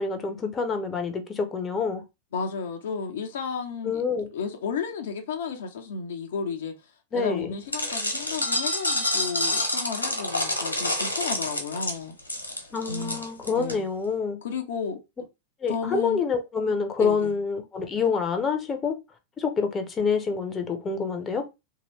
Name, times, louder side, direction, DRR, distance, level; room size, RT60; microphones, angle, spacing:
voice 1, 0.0-2.0 3.8-4.3 7.1-7.5 12.7-14.4 15.6-19.0 19.4-21.4, left 5 dB, 20° left, 0.7 m, -27 dB
voice 2, 2.3-4.0 4.3-12.2 12.9-13.2 13.5-13.8 14.4-15.0 15.7-16.2 17.0-17.4, left 5 dB, 60° left, 0.5 m, -33 dB
sound 1, 7.7-13.7, left 1 dB, 85° left, 1.2 m, -28 dB
2.9 x 2.7 x 3.0 m
figure-of-eight pair, 90°, 0 cm